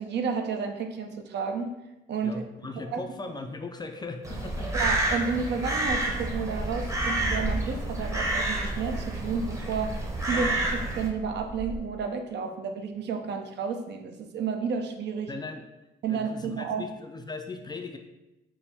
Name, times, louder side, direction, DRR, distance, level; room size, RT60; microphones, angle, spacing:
voice 1, 0.0-1.7 2.1-2.4 2.9-3.0 4.7-9.9 10.3-10.6 11.0-15.3 16.0-16.8, right 5 dB, 60° right, 5 dB, 0.4 m, -31 dB
voice 2, 2.2-4.7 10.3-10.5 15.3-15.7 16.1-18.0, left 3 dB, 20° left, 5 dB, 0.3 m, -38 dB
Crow, 4.2-11.1, right 1 dB, 15° right, 0.7 m, -29 dB
sound 1, 5.8-11.8, right 2 dB, 45° right, 1.3 m, -38 dB
4.3 x 2.2 x 3.4 m, 0.97 s
cardioid pair, 90°, 20 cm